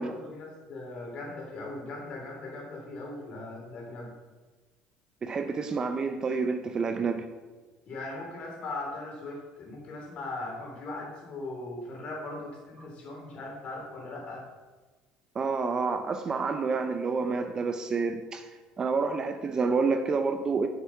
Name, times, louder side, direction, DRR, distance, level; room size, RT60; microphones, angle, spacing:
voice 1, 0.0-4.1 7.8-14.5, left 2 dB, 45° left, -1 dB, 3.1 m, -39 dB
voice 2, 5.2-7.3 15.3-18.5 18.8-20.7, right 4 dB, 25° right, 7 dB, 0.6 m, -28 dB
7.5 x 7.0 x 5.8 m, 1.3 s
cardioid pair, 135°, 3 cm